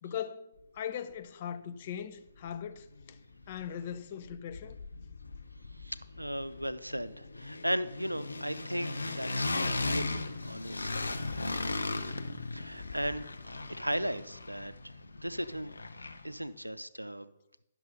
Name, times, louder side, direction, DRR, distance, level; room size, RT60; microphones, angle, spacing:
voice 1, 0.0-3.2 3.5-4.8, left 9 dB, 40° left, 0.6 m, -40 dB
sound 1, 2.4-2.5 2.8-4.0 4.2-16.4, left 3 dB, 75° left, 0.6 m, -38 dB
voice 2, 5.8-12.0 12.5-13.3 13.8-15.7 16.2-17.3, equal, 90° right, 0.4 m, -37 dB
10.5 x 6.1 x 5.3 m
figure-of-eight pair, 125°, 0 cm